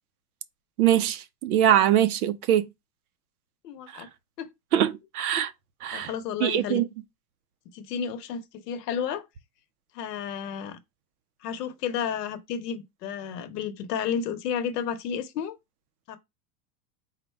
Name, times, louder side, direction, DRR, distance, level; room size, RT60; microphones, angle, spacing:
voice 1, 0.8-2.6 3.9-4.0 4.7-5.5 5.8-6.1 6.4-6.9, right 11 dB, 60° right, 0.5 m, -22 dB
voice 2, 3.6-4.1 4.4-4.5 5.9-6.8 7.7-9.2 9.9-10.8 11.4-15.6 16.1-16.2, left 8 dB, 70° left, 0.9 m, -32 dB
4.0 x 2.2 x 4.3 m
supercardioid pair, 175°, 50 cm